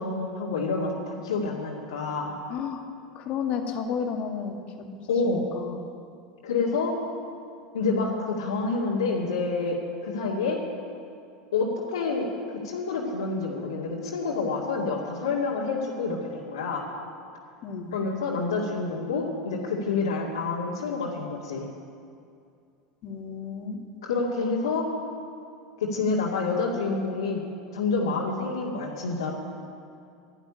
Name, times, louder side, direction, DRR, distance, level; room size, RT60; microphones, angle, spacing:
voice 1, 0.0-2.4 5.1-5.5 6.4-6.9 7.7-10.6 11.5-16.8 17.9-21.7 24.0-24.8 25.8-27.4 27.7-29.3, left 4 dB, 85° left, -7 dB, 2.3 m, -28 dB
voice 2, 2.5-2.8 3.2-4.6 5.3-5.8 17.6-17.9 23.0-23.8, left 6 dB, 50° left, 3 dB, 2.1 m, -32 dB
12.0 x 11.5 x 9.9 m, 2.5 s
hypercardioid pair, 90°, 3 cm